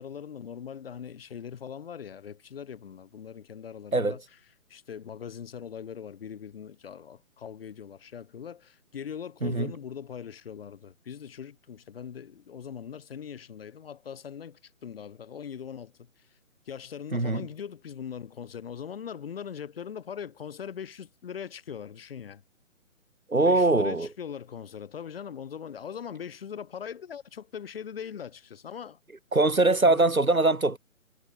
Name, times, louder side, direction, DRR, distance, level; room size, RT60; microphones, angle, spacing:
voice 1, 0.0-4.2 4.7-15.9 16.7-22.4 23.4-29.0 29.9-30.1, left 8 dB, 45° left, 7.0 m, -41 dB
voice 2, 9.4-9.7 17.1-17.5 23.3-24.1 29.3-30.8, right 2 dB, 80° right, 6.8 m, -22 dB
figure-of-eight pair, 145°, 41 cm